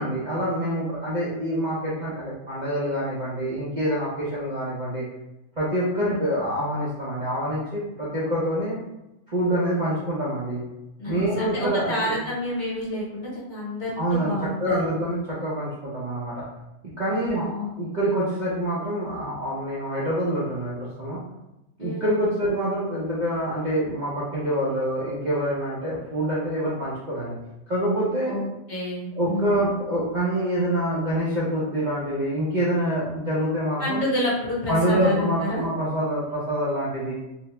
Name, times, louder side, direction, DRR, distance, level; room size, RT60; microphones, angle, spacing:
voice 1, 0.0-5.0 5.6-8.8 9.3-10.6 11.1-11.9 13.9-14.3 14.6-16.4 17.0-21.2 21.8-27.4 27.7-28.4 29.1-34.0 34.7-37.1, right 1 dB, 60° right, -8 dB, 0.4 m, -26 dB
voice 2, 11.0-14.8 17.1-17.7 21.8-22.3 28.3-29.8 33.8-35.7, left 1 dB, 50° left, -6 dB, 1.2 m, -29 dB
2.8 x 2.1 x 2.9 m, 0.93 s
omnidirectional pair, 1.6 m